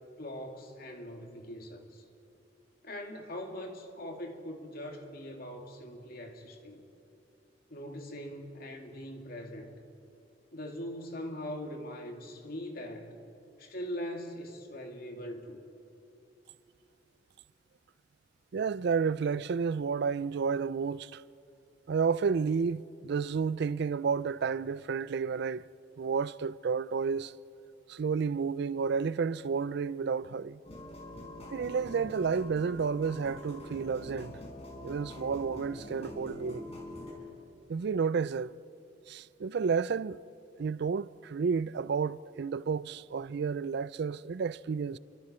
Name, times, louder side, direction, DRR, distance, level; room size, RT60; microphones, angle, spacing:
voice 1, 0.2-2.0 2.8-6.8 7.7-9.7 10.5-13.2 13.6-15.6, equal, 55° left, 2.5 m, -41 dB
voice 2, 18.5-21.2 21.9-25.6 26.0-27.3 27.9-30.6 31.5-34.4 34.8-36.7 37.7-38.6 39.1-40.2 40.6-45.0, right 5 dB, 60° right, 0.4 m, -31 dB
sound 1, 30.6-37.1, left 1 dB, 35° left, 4.4 m, -45 dB
30.0 x 24.5 x 4.4 m
head